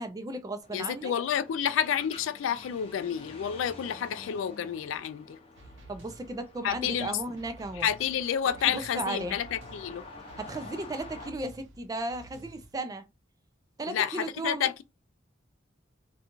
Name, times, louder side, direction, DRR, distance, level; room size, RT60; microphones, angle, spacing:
voice 1, 0.0-1.1 5.9-7.9 8.6-9.4 10.4-13.1 13.8-14.7, right 2 dB, 20° right, 0.3 m, -35 dB
sound 1, 0.6-11.3, left 2 dB, 30° left, 0.6 m, -49 dB
voice 2, 0.7-5.4 6.6-7.1 7.8-10.0 13.9-14.8, left 9 dB, 75° left, 0.3 m, -30 dB
sound 2, 5.6-12.8, right 1 dB, 70° right, 0.7 m, -52 dB
2.5 x 2.3 x 2.9 m
head